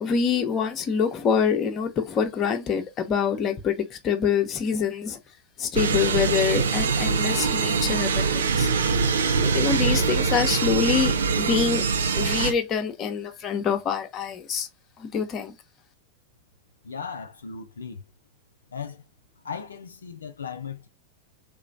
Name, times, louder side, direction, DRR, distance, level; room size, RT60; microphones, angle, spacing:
voice 1, 0.0-5.2 5.6-8.7 9.4-11.8 12.1-14.7 15.0-15.5, left 7 dB, 30° left, 0.8 m, -25 dB
sound 1, 5.7-12.5, right 5 dB, 65° right, 0.5 m, -23 dB
voice 2, 16.8-18.0 18.7-19.0 19.4-20.9, left 6 dB, 70° left, 0.4 m, -37 dB
3.4 x 3.0 x 2.6 m
figure-of-eight pair, 90°, 0 cm